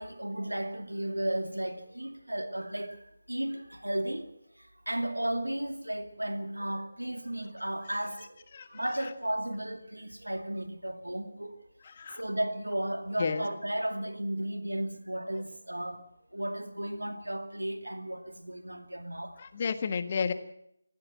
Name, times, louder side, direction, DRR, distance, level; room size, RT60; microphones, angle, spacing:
voice 1, 0.0-11.6 12.1-19.4, right 1 dB, 90° right, 2.3 m, -34 dB
voice 2, 19.4-20.3, left 6 dB, 35° left, 1.5 m, -31 dB
23.5 x 15.0 x 7.6 m
figure-of-eight pair, 160°, 0 cm